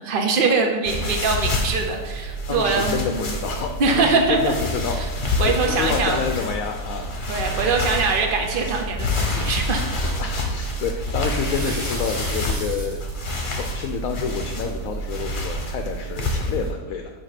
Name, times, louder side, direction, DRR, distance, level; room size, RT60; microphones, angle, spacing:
voice 1, 0.0-3.3 3.8-4.5 4.9-5.0 5.4-6.2 7.3-9.9, right 4 dB, 85° right, 3 dB, 0.4 m, -22 dB
sound 1, 0.9-16.7, left 1 dB, 40° left, 0.8 m, -27 dB
voice 2, 2.5-7.1 10.2-13.0 13.3-17.1, left 6 dB, 70° left, 4 dB, 0.8 m, -28 dB
sound 2, 11.2-13.4, right 1 dB, 55° right, 2.4 m, -35 dB
7.5 x 2.9 x 5.7 m, 1.3 s
omnidirectional pair, 1.8 m